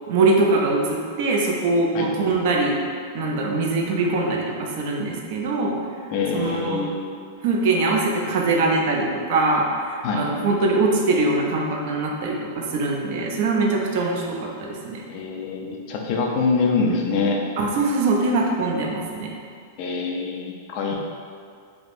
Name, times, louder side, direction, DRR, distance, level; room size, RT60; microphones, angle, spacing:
voice 1, 0.1-2.7 3.1-5.7 6.3-6.9 7.4-15.0 17.6-19.3, right 3 dB, 40° right, -1 dB, 0.4 m, -22 dB
voice 2, 6.1-7.1 10.0-10.2 15.1-17.4 19.8-21.0, left 4 dB, 30° left, -1 dB, 0.3 m, -24 dB
3.4 x 2.8 x 2.5 m, 2.2 s
supercardioid pair, 180°, 0 cm